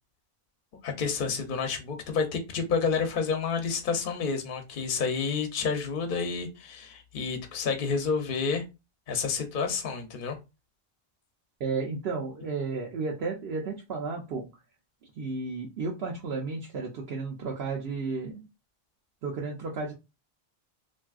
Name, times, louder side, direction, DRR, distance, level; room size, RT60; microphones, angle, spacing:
voice 1, 0.8-8.6 9.1-10.4, left 5 dB, 60° left, 0.8 m, -29 dB
voice 2, 11.6-14.4 15.2-18.4 19.2-19.9, right 4 dB, 75° right, 0.9 m, -33 dB
3.2 x 2.6 x 2.3 m
omnidirectional pair, 1.0 m